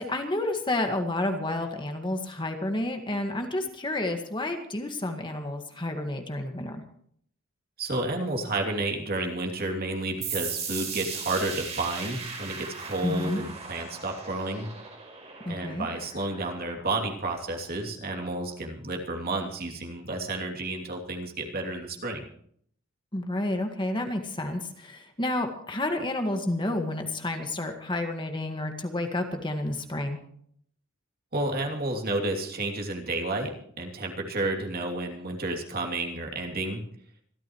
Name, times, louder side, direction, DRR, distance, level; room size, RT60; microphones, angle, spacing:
voice 1, 0.0-6.8 13.0-13.4 15.5-15.9 23.1-30.2, left 1 dB, 25° left, 4 dB, 1.8 m, -30 dB
voice 2, 7.8-14.7 15.5-22.2 31.3-36.8, right 2 dB, 50° right, 2 dB, 2.9 m, -31 dB
sound 1, 10.2-17.6, right 5 dB, 35° right, 4.7 m, -38 dB
26.0 x 13.0 x 3.2 m, 0.63 s
head